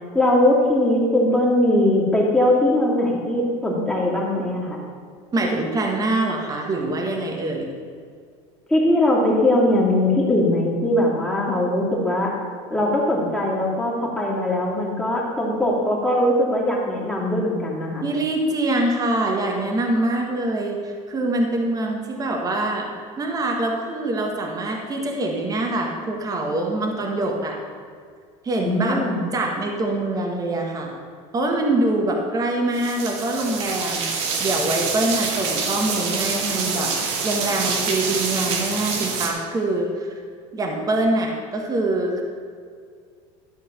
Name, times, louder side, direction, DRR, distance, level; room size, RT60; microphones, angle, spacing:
voice 1, 0.1-4.8 8.7-12.3 12.7-18.0 28.6-29.2, left 1 dB, 5° left, -5 dB, 2.7 m, -20 dB
voice 2, 5.3-7.7 18.0-22.9 23.2-27.6 28.4-29.0 29.3-30.9 31.3-36.9 37.2-40.1 40.5-42.2, right 2 dB, 25° right, 1 dB, 1.6 m, -24 dB
sound 1, 32.7-39.3, right 5 dB, 75° right, 2.0 m, -26 dB
12.5 x 4.5 x 7.5 m, 2.1 s
supercardioid pair, 120°, 15 cm